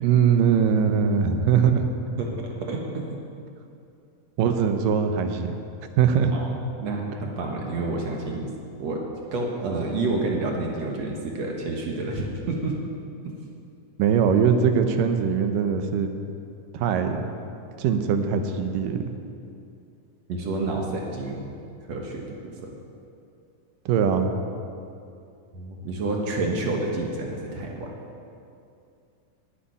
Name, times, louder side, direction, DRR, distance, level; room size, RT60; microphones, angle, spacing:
voice 1, 0.0-1.9 4.4-5.5 6.0-6.3 14.0-16.1 16.7-17.2 17.8-19.0 23.9-24.3, right 7 dB, 85° right, 6 dB, 2.5 m, -21 dB
voice 2, 2.6-3.2 6.3-6.5 6.8-8.5 8.8-9.0 9.3-12.8 20.3-21.4 21.9-22.3 22.6-22.7 25.5-27.9, right 2 dB, 60° right, 0 dB, 2.3 m, -29 dB
11.0 x 8.5 x 9.9 m, 2.5 s
omnidirectional pair, 3.8 m